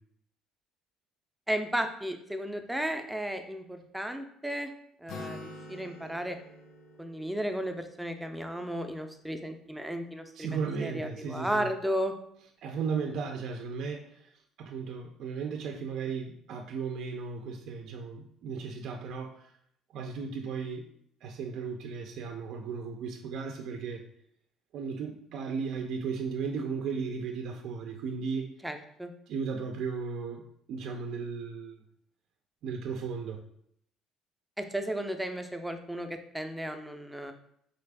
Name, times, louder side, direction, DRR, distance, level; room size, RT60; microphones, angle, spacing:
voice 1, 1.5-4.7 5.0-6.4 7.0-12.1 28.6-29.1 34.6-37.3, equal, 5° right, 6 dB, 0.4 m, -34 dB
Acoustic guitar, 5.1-8.8, left 2 dB, 60° left, 0.8 m, -47 dB
voice 2, 10.4-11.7 12.6-14.3 14.6-19.5 19.9-20.9 21.2-24.0 24.7-28.5 29.3-30.4 30.7-31.8 32.6-33.4, right 5 dB, 65° right, 3 dB, 0.4 m, -35 dB
4.0 x 2.4 x 3.4 m, 0.70 s
cardioid pair, 105°, 0 cm